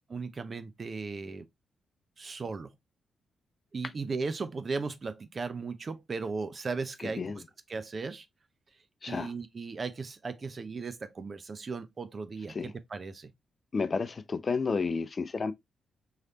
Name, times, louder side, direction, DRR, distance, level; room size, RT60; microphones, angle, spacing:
voice 1, 0.1-1.5 2.2-2.7 3.7-7.2 7.7-8.3 9.1-13.3, right 4 dB, 45° right, 0.6 m, -36 dB
voice 2, 7.0-7.4 9.0-9.3 12.5-12.7 13.7-15.5, left 4 dB, 45° left, 0.5 m, -31 dB
4.0 x 3.2 x 2.7 m
hypercardioid pair, 45°, 0 cm